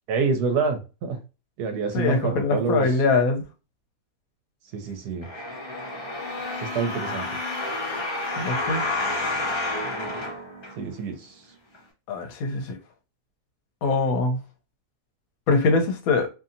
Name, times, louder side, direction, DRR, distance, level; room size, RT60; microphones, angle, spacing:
voice 1, 0.1-1.2 1.6-2.9 4.7-5.3 6.7-7.4 10.8-11.1, right 5 dB, 80° right, 1.2 m, -26 dB
voice 2, 1.9-3.4 8.4-8.8 12.1-12.8 13.8-14.4 15.5-16.3, left 3 dB, 70° left, 1.0 m, -23 dB
sound 1, 5.2-11.1 11.7-11.8, left 2 dB, 40° left, 0.4 m, -30 dB
2.7 x 2.7 x 2.5 m
omnidirectional pair, 1.7 m